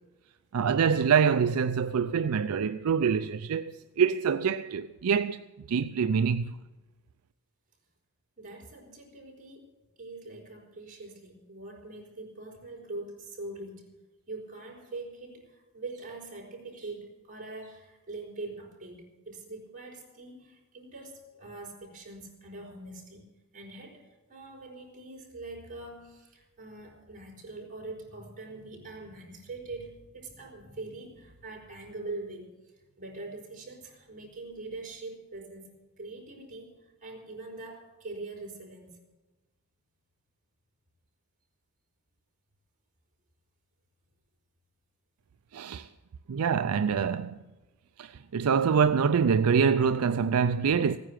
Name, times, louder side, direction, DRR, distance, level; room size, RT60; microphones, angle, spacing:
voice 1, 0.5-5.4 5.7-6.6 45.5-45.9 46.3-47.3 48.0-51.0, right 6 dB, 70° right, 0.4 m, -25 dB
voice 2, 8.4-9.7 10.0-13.9 14.3-23.3 23.5-35.7 36.0-39.0, right 2 dB, 35° right, 4.5 m, -43 dB
16.5 x 9.6 x 7.4 m
head